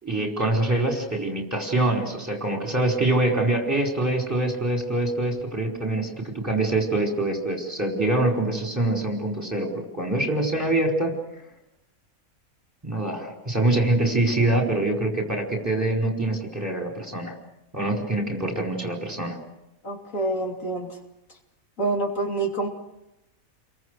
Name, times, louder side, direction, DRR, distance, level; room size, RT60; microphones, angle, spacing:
voice 1, 0.0-9.7 9.9-11.1 12.8-17.4 17.7-19.4, right 2 dB, 10° right, 1 dB, 4.7 m, -24 dB
voice 2, 19.8-21.0 21.8-22.7, right 2 dB, 70° left, 1 dB, 3.5 m, -27 dB
30.0 x 23.5 x 6.4 m, 0.88 s
omnidirectional pair, 1.5 m